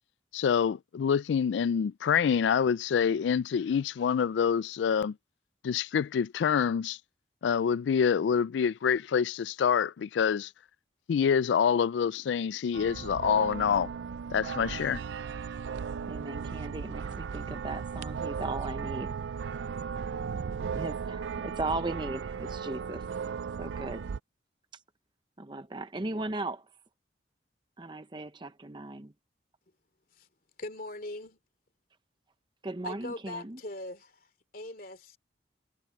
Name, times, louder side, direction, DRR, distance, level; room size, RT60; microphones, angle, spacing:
voice 1, 0.3-5.2 5.6-7.0 7.4-10.5 11.1-13.9 14.3-15.0, left 7 dB, 80° left, 0.3 m, -26 dB
sound 1, 12.7-24.2, right 6 dB, 80° right, 0.4 m, -36 dB
voice 2, 16.1-19.2 20.7-24.1 25.4-26.6 27.8-29.1 32.6-33.6, right 2 dB, 25° right, 0.7 m, -37 dB
voice 3, 30.6-31.4 32.8-35.2, left 2 dB, 50° left, 2.8 m, -41 dB
head